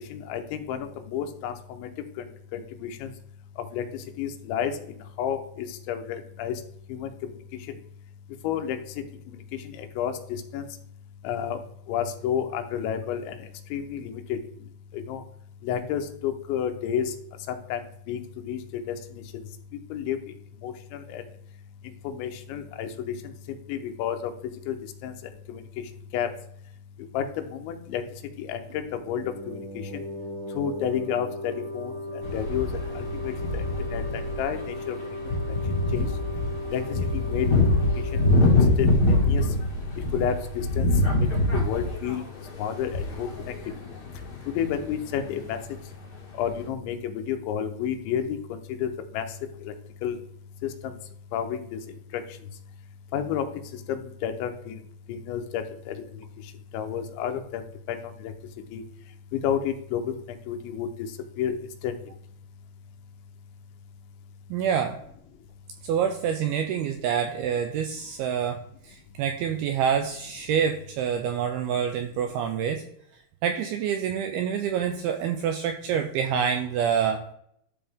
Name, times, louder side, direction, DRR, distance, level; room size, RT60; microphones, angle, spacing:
voice 1, 0.1-1.9 2.2-3.1 3.7-6.6 6.9-7.4 7.7-7.8 8.4-10.7 11.2-11.6 11.9-14.4 14.9-15.2 15.6-17.1 17.5-19.4 19.9-20.2 20.6-21.2 22.0-24.8 25.0-25.6 26.1-26.3 27.1-28.0 28.4-30.0 30.5-32.7 32.9-35.0 35.9-36.1 36.7-37.8 38.1-38.2 38.8-39.5 40.1-40.9 41.2-41.3 41.5-42.2 42.6-43.5 44.5-45.6 46.4-49.3 49.6-49.7 50.0-50.2 50.6-50.9 51.3-51.8 52.1-52.2 53.1-53.5 53.7-54.8 55.1-56.2 56.7-57.6 57.9-58.3 58.7-58.8 59.3-60.1 60.5-60.9 61.4-61.6 61.8-61.9, left 8 dB, 90° left, 7 dB, 3.2 m, -31 dB
sound 1, 28.7-40.1, left 1 dB, 60° right, 3.6 m, -37 dB
sound 2, 32.2-34.7 35.0-45.1 45.4-45.5 46.5-46.6, left 2 dB, 60° left, 1.0 m, -25 dB
voice 2, 64.5-65.0 65.8-72.8 73.4-77.2, right 8 dB, 85° right, 5 dB, 2.2 m, -27 dB
12.5 x 4.3 x 3.6 m, 0.69 s
omnidirectional pair, 5.1 m